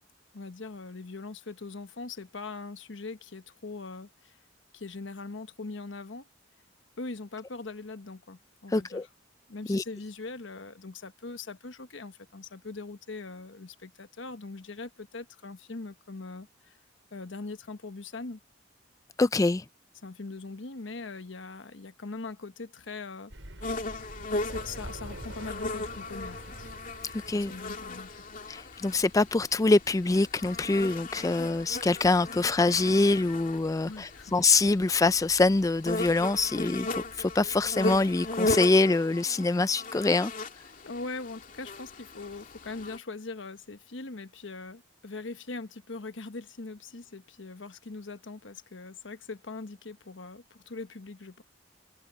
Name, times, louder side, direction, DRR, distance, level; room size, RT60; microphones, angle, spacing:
voice 1, 0.3-4.4 4.7-6.3 7.0-9.0 9.5-16.8 17.1-18.4 20.0-23.3 24.4-26.7 27.3-28.2 33.8-34.3 40.8-51.4, left 3 dB, 80° left, 1.1 m, -41 dB
voice 2, 8.7-9.1 9.7-9.8 19.2-19.6 27.1-27.5 28.5-40.3, left 3 dB, 20° left, 0.3 m, -25 dB
Thunder, 23.3-28.1, right 1 dB, 80° right, 6.0 m, -45 dB
sound 1, 23.6-43.0, left 2 dB, 45° left, 2.6 m, -37 dB
head